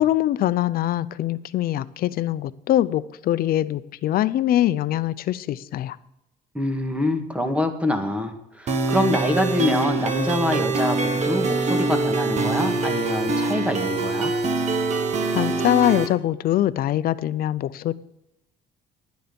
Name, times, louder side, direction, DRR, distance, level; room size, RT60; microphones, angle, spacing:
voice 1, 0.0-6.0 15.3-17.9, left 13 dB, 60° left, 15 dB, 0.6 m, -23 dB
voice 2, 6.5-14.3, left 1 dB, 5° right, 6 dB, 1.7 m, -25 dB
sound 1, 8.7-16.1, right 3 dB, 40° right, 1.3 m, -24 dB
11.5 x 9.3 x 5.3 m, 0.86 s
cardioid pair, 110°, 17 cm